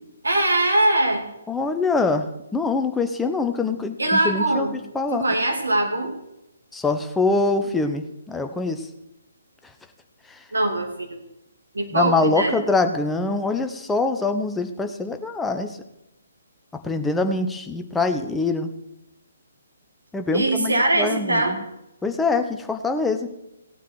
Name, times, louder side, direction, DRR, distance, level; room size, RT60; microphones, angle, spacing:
voice 1, 0.2-1.2 4.0-4.7 5.1-6.1 10.5-11.2 11.7-12.6 20.3-21.6, right 2 dB, 70° right, 2 dB, 2.8 m, -21 dB
voice 2, 1.5-2.3 2.5-4.7 4.9-5.2 6.7-8.9 10.3-10.4 11.9-15.8 16.7-18.7 20.1-21.6 22.0-23.3, left 3 dB, 5° left, 6 dB, 0.8 m, -24 dB
17.0 x 9.3 x 4.7 m, 0.90 s
figure-of-eight pair, 135°, 0 cm